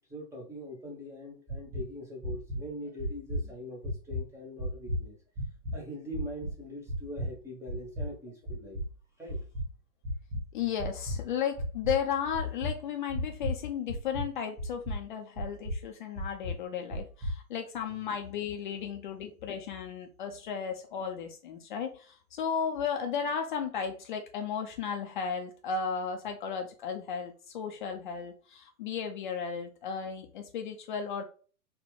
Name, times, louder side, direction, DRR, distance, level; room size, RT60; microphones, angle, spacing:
voice 1, 0.1-5.2 5.7-8.8 9.2-9.5 17.9-18.0, equal, 5° right, -1 dB, 0.6 m, -42 dB
sound 1, 1.5-1.9 2.2-2.6 3.0-3.5 3.8-4.2 4.6-5.0 5.4-5.7 6.1-6.5 6.9-7.3 7.7-8.1 8.4-8.9 9.3-9.7 10.0-10.4 10.8-11.2 11.6-12.0 12.3-12.7 13.1-13.6 13.9-14.3 14.6-15.0 15.4-15.8 16.2-16.5 16.9-17.3, equal, 25° right, 1.4 m, -33 dB
voice 2, 10.5-31.2, left 7 dB, 35° left, 4 dB, 0.5 m, -34 dB
4.1 x 2.2 x 3.1 m, 0.38 s
figure-of-eight pair, 115°, 43 cm